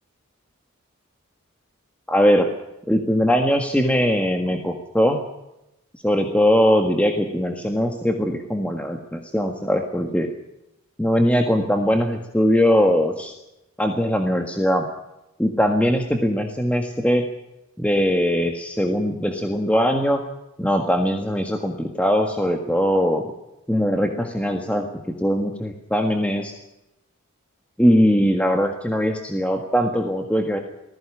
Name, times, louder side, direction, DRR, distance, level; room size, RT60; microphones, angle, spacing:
voice 1, 2.1-2.5 2.9-5.2 6.0-10.3 11.0-13.3 13.8-14.8 15.4-17.2 17.8-20.2 20.6-23.3 23.7-24.9 25.2-26.5 27.8-30.6, equal, 5° left, 3 dB, 1.6 m, -21 dB
20.0 x 15.5 x 9.8 m, 0.91 s
head